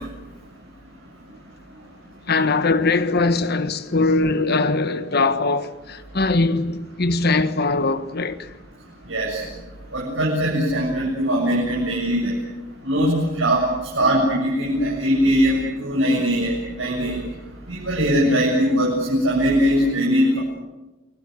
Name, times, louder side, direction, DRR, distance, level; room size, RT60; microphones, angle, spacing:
voice 1, 2.3-8.5 13.1-13.2, left 3 dB, 55° left, 1.4 m, -21 dB
voice 2, 9.1-9.4 9.9-12.3 12.8-13.6 14.0-17.2 17.7-20.4, equal, 85° right, 7.8 m, -20 dB
29.0 x 21.0 x 8.2 m
head